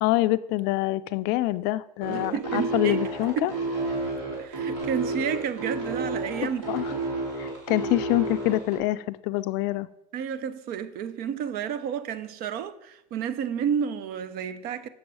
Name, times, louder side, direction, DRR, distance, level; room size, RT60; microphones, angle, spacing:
voice 1, 0.0-3.5 6.4-6.9 7.4-9.9, left 17 dB, 55° left, 0.4 m, -26 dB
sound 1, 2.0-8.8, right 2 dB, 75° right, 3.0 m, -30 dB
voice 2, 2.1-3.0 3.4-3.5 4.4-7.0 10.1-14.9, right 8 dB, 50° right, 0.6 m, -31 dB
7.3 x 6.2 x 4.7 m
hypercardioid pair, 100°, 21 cm